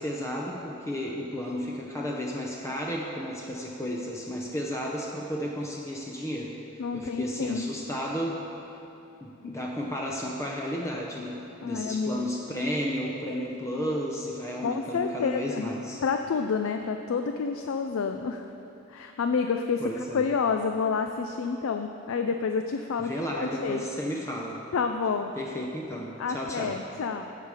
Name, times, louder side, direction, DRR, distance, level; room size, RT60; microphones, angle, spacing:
voice 1, 0.0-8.4 9.2-16.0 19.8-20.3 23.0-24.6 25.4-26.8, equal, 15° left, -2 dB, 0.6 m, -33 dB
voice 2, 6.8-7.7 9.4-9.6 11.6-12.2 14.6-15.7 16.0-18.5 18.9-23.8 24.7-25.3 26.2-27.2, left 5 dB, 70° left, 6 dB, 0.4 m, -29 dB
15.5 x 5.8 x 4.8 m, 2.9 s
head